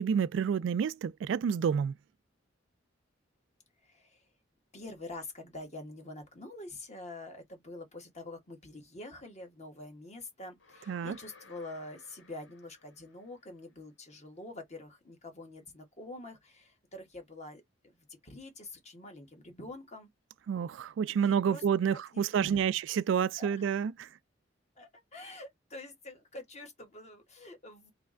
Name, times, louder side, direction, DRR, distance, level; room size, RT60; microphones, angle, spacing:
voice 1, 0.0-1.9 10.9-11.2 20.5-24.1, right 7 dB, 75° right, 0.3 m, -29 dB
voice 2, 3.8-4.3 4.7-17.6 18.0-20.1 21.1-22.6 23.3-23.8 24.8-27.9, left 2 dB, 35° left, 1.4 m, -46 dB
sound 1, 10.6-13.7, left 3 dB, 80° left, 1.5 m, -59 dB
3.3 x 3.2 x 3.7 m
head